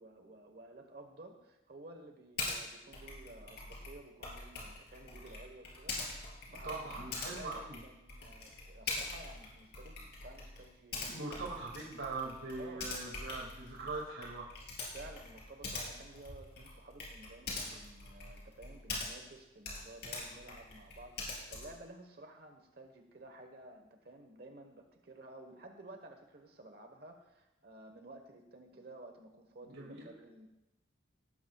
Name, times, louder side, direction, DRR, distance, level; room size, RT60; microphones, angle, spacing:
voice 1, 0.0-11.4 12.5-12.9 14.9-30.5, right 2 dB, 55° right, 4 dB, 1.2 m, -53 dB
Typing, 2.4-2.6 2.9-19.3 19.6-21.8, left 3 dB, 55° left, 3.7 m, -43 dB
voice 2, 6.6-7.8 11.1-14.5 29.6-30.1, right 3 dB, 90° right, -2 dB, 2.2 m, -41 dB
17.5 x 12.5 x 2.3 m, 0.93 s
head